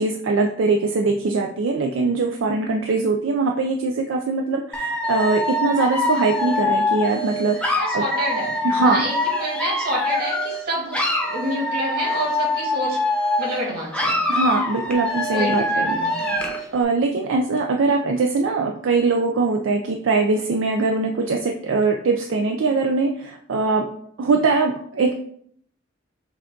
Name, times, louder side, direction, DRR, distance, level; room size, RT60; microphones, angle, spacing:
voice 1, 0.0-8.0 8.6-9.0 14.3-16.0 16.7-23.9 24.2-25.1, right 3 dB, 65° right, 2 dB, 0.4 m, -22 dB
Dog / Alarm, 4.7-10.6 10.9-13.6 13.9-16.7, left 2 dB, 5° left, 0.7 m, -24 dB
voice 2, 7.7-13.0 13.4-14.2 15.3-16.4, equal, 50° right, -3 dB, 1.9 m, -28 dB
6.1 x 2.3 x 3.7 m, 0.65 s
head